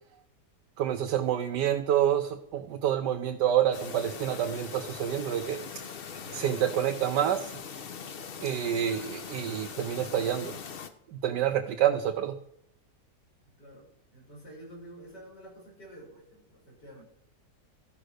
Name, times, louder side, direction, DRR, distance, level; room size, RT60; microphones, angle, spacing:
voice 1, 0.8-5.6 6.3-7.5 8.4-10.5 11.1-12.3, right 10 dB, 85° right, 5 dB, 1.3 m, -28 dB
Chirp tweet, 3.7-10.9, left 6 dB, 50° left, 0.7 m, -41 dB
voice 2, 6.1-6.7 13.6-17.0, right 1 dB, 85° left, -3 dB, 4.9 m, -49 dB
14.0 x 5.1 x 6.4 m, 0.75 s
omnidirectional pair, 1.8 m